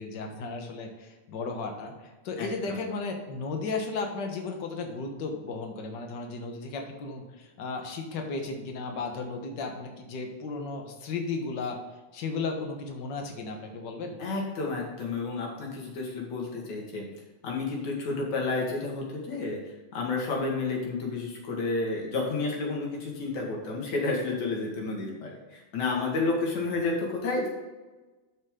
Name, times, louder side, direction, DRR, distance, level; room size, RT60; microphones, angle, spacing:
voice 1, 0.0-11.8 12.1-14.2 26.6-26.8, left 4 dB, 55° left, 3 dB, 1.3 m, -35 dB
voice 2, 2.4-2.8 14.2-17.0 17.4-19.6 19.9-27.5, left 3 dB, 75° left, -1 dB, 3.3 m, -31 dB
12.0 x 5.7 x 3.7 m, 1.2 s
omnidirectional pair, 3.4 m